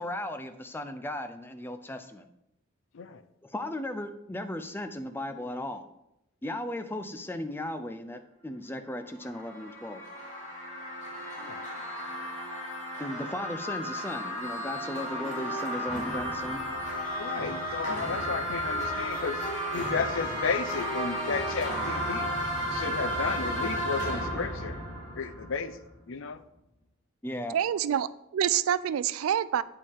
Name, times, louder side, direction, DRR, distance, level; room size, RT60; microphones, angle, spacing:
voice 1, 0.0-2.3 3.4-5.8 6.4-10.0 13.0-16.6 27.2-27.5, left 1 dB, 10° left, 8 dB, 0.4 m, -36 dB
sound 1, 9.0-25.9, equal, 35° left, 3.0 m, -33 dB
voice 2, 17.2-19.4 19.7-22.3 22.7-24.8 25.2-25.7 26.1-26.4, left 5 dB, 65° left, 13 dB, 0.5 m, -33 dB
voice 3, 27.5-29.6, right 9 dB, 85° right, 17 dB, 0.3 m, -27 dB
8.4 x 5.3 x 3.6 m, 0.85 s
head